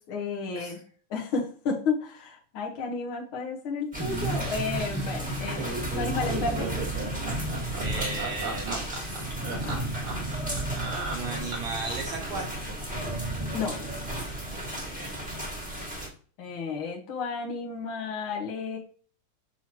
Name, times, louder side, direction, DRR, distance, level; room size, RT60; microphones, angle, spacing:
voice 1, 0.1-0.8 1.1-6.7 9.6-9.9 13.5-13.7 16.4-18.8, left 4 dB, 70° left, -1 dB, 1.2 m, -32 dB
sound 1, 3.9-16.1, right 1 dB, 5° right, 1.1 m, -33 dB
Laughter, 4.0-11.8, right 3 dB, 50° right, 1.8 m, -35 dB
voice 2, 7.8-9.3 11.1-12.8 14.5-15.2, right 3 dB, 70° right, 0 dB, 1.2 m, -36 dB
6.0 x 5.6 x 3.0 m, 0.43 s
omnidirectional pair, 3.9 m